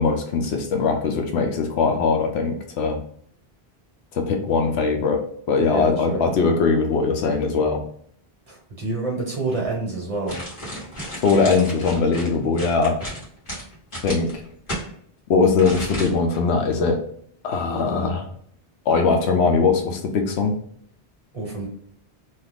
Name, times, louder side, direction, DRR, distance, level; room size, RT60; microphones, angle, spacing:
voice 1, 0.0-3.0 4.1-7.8 11.2-13.0 14.0-14.3 15.3-17.0 17.4-18.3 18.9-20.6, left 4 dB, 85° left, 4 dB, 0.9 m, -21 dB
voice 2, 5.6-6.3 8.5-10.4 21.3-21.7, right 3 dB, 35° right, -3 dB, 1.1 m, -28 dB
sound 1, 10.3-14.9 15.6-16.4 16.7-16.8, equal, 50° left, 1.4 m, -33 dB
2.8 x 2.4 x 3.4 m, 0.63 s
omnidirectional pair, 1.1 m